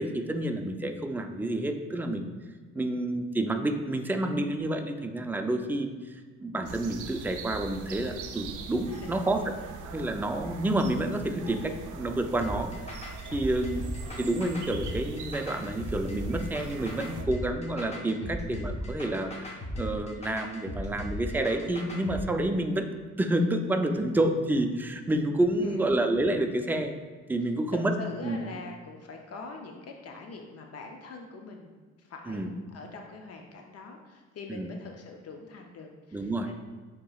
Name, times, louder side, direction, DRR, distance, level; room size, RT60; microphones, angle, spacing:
voice 1, 0.0-2.2 2.7-9.4 9.9-13.8 14.2-22.9 23.2-26.9 27.3-27.9 28.2-28.4 32.3-32.5 34.5-34.7 36.1-36.5, right 1 dB, 5° right, 5 dB, 0.4 m, -29 dB
sound 1, 6.6-17.2, right 5 dB, 85° right, 0.5 m, -42 dB
voice 2, 8.9-9.3 11.8-11.9 13.3-13.8 14.0-14.2 18.2-18.4 25.5-25.9 27.7-36.5, left 4 dB, 55° left, 3 dB, 0.6 m, -44 dB
sound 2, 12.4-22.2, left 1 dB, 20° left, 0.7 m, -37 dB
7.7 x 2.9 x 2.3 m, 1.4 s
cardioid pair, 90°, 30 cm